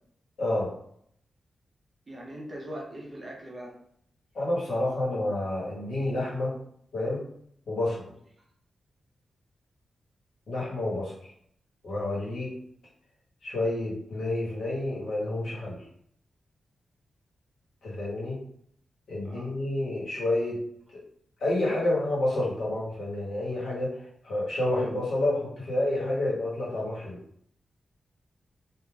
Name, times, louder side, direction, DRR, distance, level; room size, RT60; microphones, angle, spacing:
voice 1, 0.4-0.7 4.3-6.5 6.9-7.2 7.7-8.0 10.5-11.1 11.8-12.5 13.4-15.8 17.8-18.4 19.1-20.6 21.4-27.2, left 1 dB, 85° left, -6 dB, 1.3 m, -29 dB
voice 2, 2.1-3.8 19.2-19.5, right 1 dB, 25° right, -2 dB, 0.7 m, -40 dB
3.4 x 2.4 x 2.3 m, 0.68 s
wide cardioid pair, 160°, 0 cm